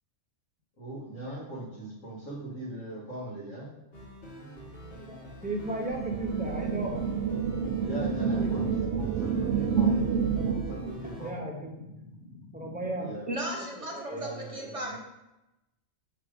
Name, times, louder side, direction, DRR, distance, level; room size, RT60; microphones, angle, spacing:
voice 1, 0.8-3.7 7.8-11.4 13.0-13.3 14.1-15.0, right 1 dB, 80° left, -4 dB, 2.1 m, -40 dB
sound 1, 3.9-11.3, right 1 dB, 50° left, 1.4 m, -45 dB
voice 2, 5.0-7.1 8.3-9.1 11.0-13.1 13.7-14.3, right 1 dB, 5° right, 0 dB, 0.8 m, -37 dB
sound 2, 5.9-10.9, right 6 dB, 70° right, 0.9 m, -28 dB
voice 3, 13.3-15.0, right 1 dB, 30° right, -2 dB, 1.0 m, -35 dB
6.0 x 3.4 x 5.0 m, 0.95 s
omnidirectional pair, 1.3 m